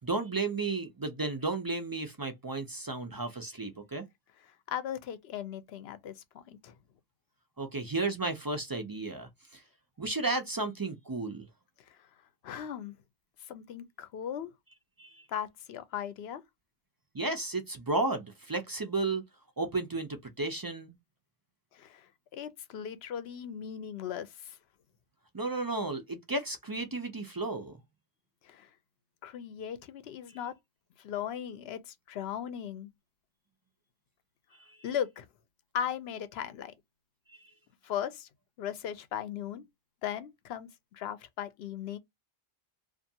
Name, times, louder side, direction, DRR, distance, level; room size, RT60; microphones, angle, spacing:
voice 1, 0.0-4.1 7.6-9.6 10.0-11.5 15.0-15.3 17.1-19.2 19.6-20.9 25.3-27.8 34.7-34.8 37.3-37.5, right 3 dB, 40° right, 0.3 m, -33 dB
voice 2, 4.7-6.8 11.9-12.1 12.4-12.9 13.5-14.5 15.3-16.4 21.7-24.6 28.4-28.7 29.2-30.5 31.0-32.9 34.8-35.3 35.7-36.7 37.8-38.3 38.6-39.6 40.0-42.0, left 9 dB, 85° left, 0.8 m, -38 dB
2.5 x 2.5 x 2.6 m
omnidirectional pair, 1.0 m